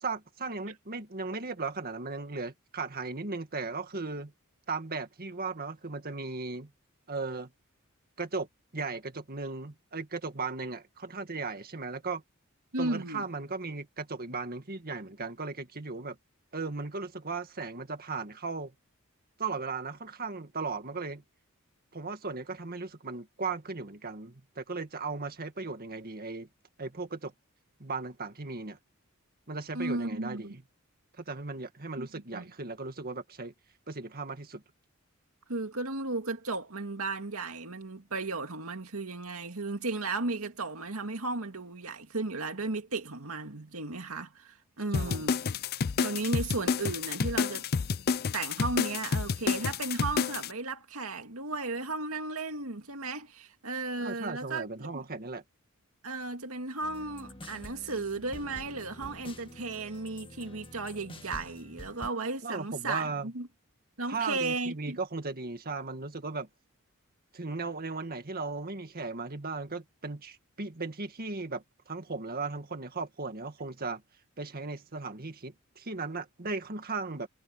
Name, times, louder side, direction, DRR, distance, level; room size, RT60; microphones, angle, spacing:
voice 1, 0.0-4.3 4.7-6.7 7.1-7.5 8.2-8.5 8.7-12.2 12.8-16.2 16.5-18.7 19.4-21.2 21.9-26.5 26.8-27.3 27.8-28.8 29.5-30.6 31.2-33.5 33.9-34.6 44.9-45.3 54.0-55.4 62.4-63.3 64.1-66.5 67.3-74.0 74.4-77.3, right 3 dB, 45° right, 2.0 m, -36 dB
voice 2, 12.7-13.3 29.7-30.6 32.0-32.5 35.5-45.4 46.0-47.7 48.3-55.0 56.0-63.5 64.0-65.0, right 3 dB, 75° right, 2.3 m, -35 dB
sound 1, 44.9-50.5, left 5 dB, 45° left, 0.5 m, -29 dB
sound 2, 56.8-62.1, left 1 dB, 25° left, 1.9 m, -47 dB
head